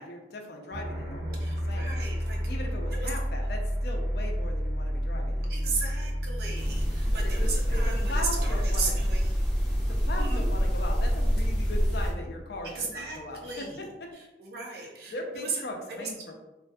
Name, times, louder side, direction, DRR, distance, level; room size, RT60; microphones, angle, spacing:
voice 1, 0.0-2.0 2.5-5.5 7.1-8.9 9.9-14.1 14.7-16.3, left 1 dB, 60° left, 1 dB, 0.4 m, -39 dB
sound 1, 0.7-13.4, equal, 85° right, 1.1 m, -30 dB
voice 2, 1.4-2.4 2.9-3.1 5.5-9.3 10.2-10.5 12.7-13.8 14.1-15.6 16.0-16.1, right 4 dB, 60° right, -1 dB, 0.6 m, -36 dB
sound 2, 6.5-12.1, equal, 5° left, 0.6 m, -29 dB
2.5 x 2.3 x 2.5 m, 1.0 s
head